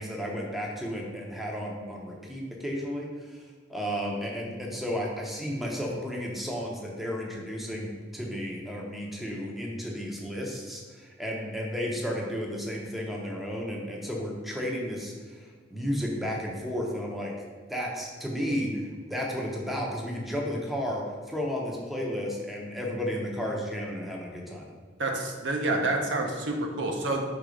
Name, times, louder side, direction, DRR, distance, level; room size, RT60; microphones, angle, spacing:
voice 1, 0.0-3.4 3.7-17.3 17.7-24.7, equal, ahead, -2 dB, 0.8 m, -33 dB
voice 2, 25.0-27.2, right 2 dB, 70° right, 1 dB, 0.8 m, -28 dB
5.0 x 3.7 x 5.0 m, 1.5 s
head